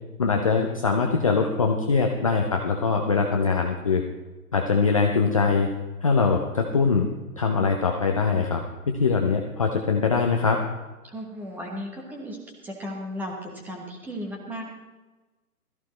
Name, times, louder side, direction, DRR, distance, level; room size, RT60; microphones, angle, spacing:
voice 1, 0.2-4.0 4.5-5.7 6.0-7.1 7.4-8.6 8.9-10.6, left 4 dB, 25° left, 2 dB, 0.6 m, -22 dB
voice 2, 11.0-12.4 12.6-14.6, equal, 5° right, 0 dB, 1.1 m, -35 dB
16.5 x 14.0 x 3.1 m, 1.2 s
figure-of-eight pair, 140°, 45 cm